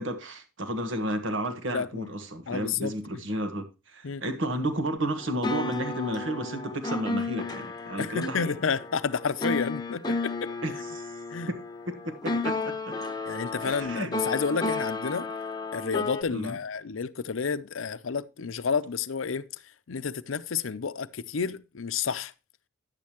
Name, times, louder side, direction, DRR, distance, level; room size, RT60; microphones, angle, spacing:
voice 1, 0.0-8.6 10.6-11.1 11.5-11.6 11.9-13.0 13.6-14.1 16.3-16.6, right 1 dB, 75° right, 1.4 m, -32 dB
voice 2, 1.7-2.1 2.5-2.9 4.0-4.2 8.0-10.5 11.3-11.5 13.2-15.3 15.7-19.5 19.9-22.3, left 5 dB, 85° left, 0.6 m, -30 dB
sound 1, 5.2-16.2, left 3 dB, 20° left, 0.8 m, -33 dB
10.5 x 8.5 x 2.9 m
head